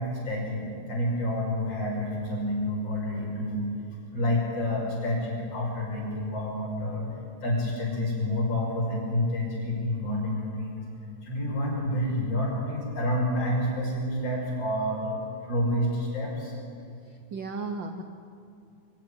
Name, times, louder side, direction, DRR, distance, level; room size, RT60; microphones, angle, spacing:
voice 1, 0.0-3.7 4.1-7.1 7.4-10.8 11.2-16.5, left 1 dB, 50° left, -3 dB, 7.0 m, -29 dB
voice 2, 17.0-18.0, right 3 dB, 90° right, 6 dB, 1.0 m, -35 dB
23.5 x 16.0 x 8.9 m, 2.4 s
omnidirectional pair, 3.5 m